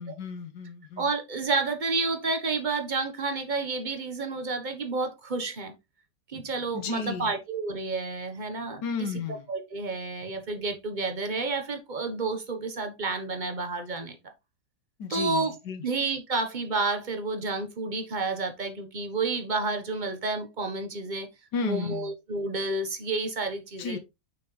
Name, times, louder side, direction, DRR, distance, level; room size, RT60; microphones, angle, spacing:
voice 1, 0.0-1.1 6.7-7.3 8.8-9.4 15.0-15.8 21.5-22.1 23.8-24.0, left 5 dB, 65° left, 1.5 m, -33 dB
voice 2, 1.0-5.7 6.3-9.1 9.5-14.2 15.1-15.6 15.8-21.3 21.6-24.0, right 3 dB, 30° right, 0.9 m, -30 dB
6.3 x 5.9 x 3.2 m
omnidirectional pair, 2.2 m